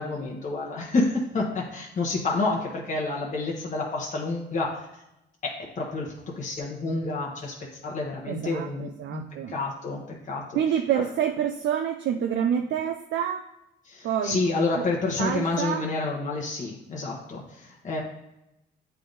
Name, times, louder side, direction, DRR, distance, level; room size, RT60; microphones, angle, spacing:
voice 1, 0.0-5.0 5.4-7.5 7.8-9.2 9.5-10.6 13.8-18.0, left 3 dB, 40° left, -2 dB, 1.1 m, -29 dB
voice 2, 8.3-9.6 10.5-13.5 14.0-14.4 14.8-14.9 15.2-15.9, right 9 dB, 70° right, 6 dB, 0.5 m, -27 dB
8.3 x 3.4 x 4.0 m, 0.88 s
cardioid pair, 90°, 20 cm